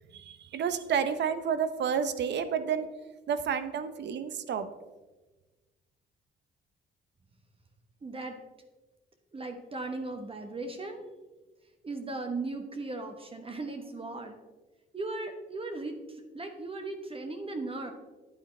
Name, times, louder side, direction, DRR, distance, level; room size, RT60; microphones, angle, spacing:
voice 1, 0.1-2.9 3.3-4.7, right 7 dB, 60° right, 11 dB, 0.8 m, -30 dB
voice 2, 8.0-8.4 9.3-11.0 11.8-14.4 14.9-17.9, right 2 dB, 30° right, 5 dB, 1.0 m, -37 dB
9.2 x 9.1 x 3.3 m, 1.2 s
cardioid pair, 90°, 20 cm